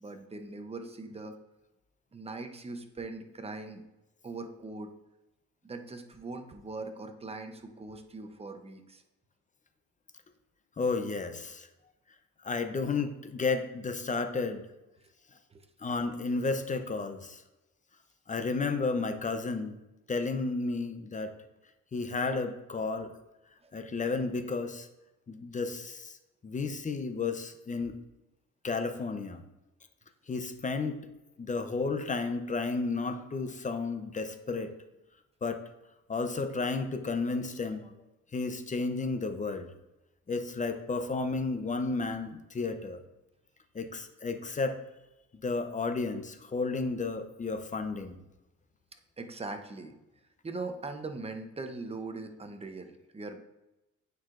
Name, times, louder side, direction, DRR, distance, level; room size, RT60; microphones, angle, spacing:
voice 1, 0.0-1.3 2.1-3.8 4.2-4.9 5.6-9.0 15.5-15.7 23.6-23.7 49.2-49.9 50.4-53.4, right 3 dB, 20° right, 6 dB, 0.7 m, -41 dB
voice 2, 10.8-11.7 12.4-14.6 15.8-17.4 18.3-19.8 20.1-21.3 21.9-23.1 23.7-24.9 25.3-26.2 26.4-28.0 28.6-29.4 30.3-31.0 31.4-34.7 35.4-35.6 36.1-37.9 38.3-39.7 40.3-43.0 43.7-44.8 45.4-48.2, left 4 dB, 25° left, 8 dB, 0.6 m, -32 dB
8.6 x 4.7 x 2.5 m, 0.96 s
cardioid pair, 90°, 30 cm